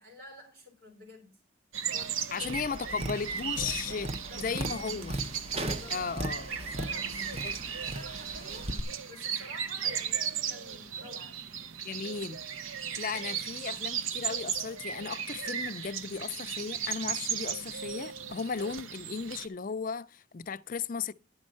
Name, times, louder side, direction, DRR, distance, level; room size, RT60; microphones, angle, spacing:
voice 1, 0.0-1.4 1.9-2.6 3.9-4.5 5.5-8.7 9.1-11.5, left 1 dB, 50° right, 4.5 m, -51 dB
sound 1, 1.7-19.5, right 7 dB, 85° right, 0.8 m, -36 dB
voice 2, 2.3-4.1 4.4-5.2 5.9-6.5 7.4-7.5 11.8-12.4 13.0-21.1, left 5 dB, 40° left, 0.4 m, -35 dB
Tap, 2.4-8.8, right 1 dB, 30° right, 0.9 m, -38 dB
11.0 x 5.4 x 7.5 m
head